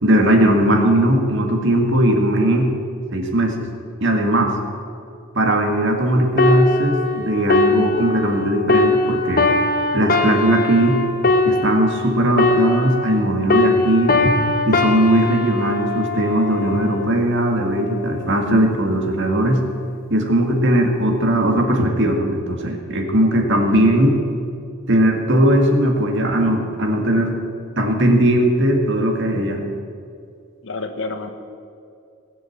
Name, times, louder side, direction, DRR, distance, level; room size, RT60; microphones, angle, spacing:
voice 1, 0.0-2.7 3.1-3.6 4.0-4.5 5.3-9.4 9.9-11.0 11.5-14.4 14.7-19.6 20.1-24.2 24.9-27.4 27.8-29.6, right 1 dB, 60° right, 3 dB, 2.0 m, -18 dB
sound 1, 6.4-13.2 13.5-17.1 17.7-17.9, left 2 dB, 45° left, 1.1 m, -20 dB
voice 2, 30.6-31.3, left 3 dB, 65° left, 7 dB, 1.3 m, -29 dB
18.5 x 7.9 x 7.4 m, 2.4 s
head